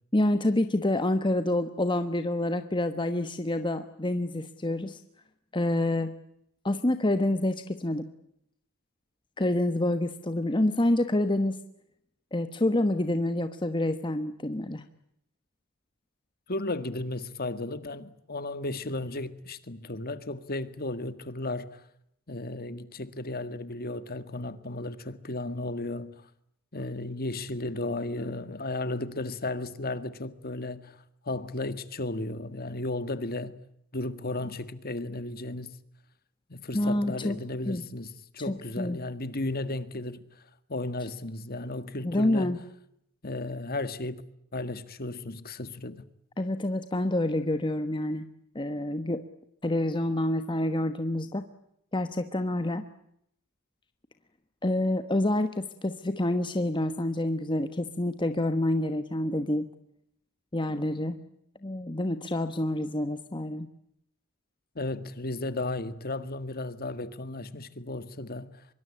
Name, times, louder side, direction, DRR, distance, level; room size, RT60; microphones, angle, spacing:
voice 1, 0.1-5.0 5.5-6.1 6.6-8.1 9.4-11.6 12.3-14.8 36.7-37.3 37.7-37.8 38.5-39.0 42.0-42.6 46.4-48.3 48.5-49.2 49.6-51.4 51.9-52.8 54.6-59.7 60.5-61.2 61.6-63.7, left 1 dB, 20° left, 1.2 m, -27 dB
voice 2, 16.5-21.8 22.3-26.3 26.7-33.6 33.9-35.8 36.5-42.5 43.2-44.2 44.5-46.1 64.8-68.7, left 2 dB, 45° left, 1.8 m, -34 dB
25.0 x 23.5 x 8.6 m
head